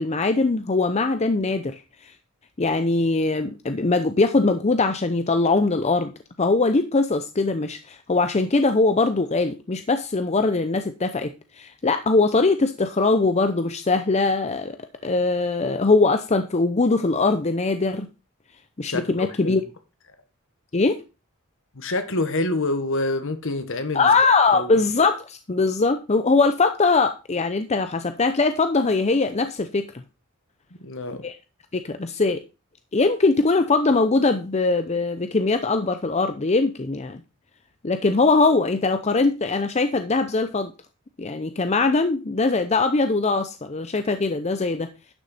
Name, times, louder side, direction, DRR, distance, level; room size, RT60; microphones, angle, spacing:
voice 1, 0.0-1.8 2.6-6.1 6.4-14.8 15.0-18.1 18.8-19.6 20.7-21.0 23.9-30.0 31.2-31.4 31.7-32.4 32.9-37.2 37.8-40.7 41.2-44.9, left 3 dB, 30° left, 0.6 m, -21 dB
voice 2, 18.8-19.6 21.7-24.1 24.5-24.8 30.8-31.2, left 2 dB, 60° left, 1.5 m, -27 dB
11.0 x 6.5 x 4.1 m
head